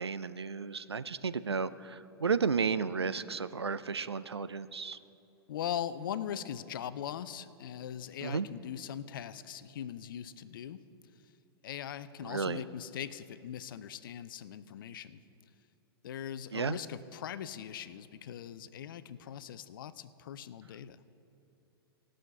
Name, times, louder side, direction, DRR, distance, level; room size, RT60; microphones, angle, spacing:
voice 1, 0.0-5.0 8.2-8.5 12.2-12.6 16.5-16.8, right 5 dB, 85° right, 14 dB, 0.4 m, -33 dB
voice 2, 5.5-10.8 11.6-15.2 16.0-21.0, left 9 dB, 55° left, 15 dB, 0.5 m, -40 dB
18.0 x 6.4 x 5.4 m, 2.9 s
figure-of-eight pair, 105°, 13 cm